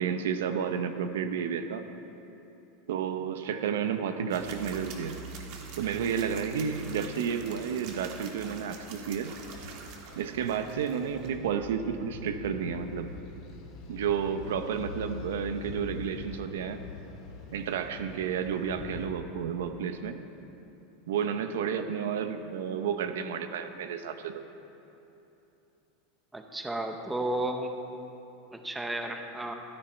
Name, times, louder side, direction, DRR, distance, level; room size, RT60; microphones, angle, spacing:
voice 1, 0.0-1.8 2.9-5.2 5.8-9.3 10.2-13.1 13.9-16.8 17.5-20.2 21.1-24.4, right 7 dB, 85° right, 9 dB, 0.8 m, -31 dB
sound 1, 4.3-11.3, right 4 dB, 55° right, 1.5 m, -45 dB
sound 2, 8.0-19.1, left 3 dB, 50° left, 1.8 m, -45 dB
voice 2, 26.3-27.7 28.5-29.5, right 1 dB, 5° right, 5 dB, 0.8 m, -33 dB
14.0 x 9.7 x 4.5 m, 3.0 s
supercardioid pair, 145°, 0 cm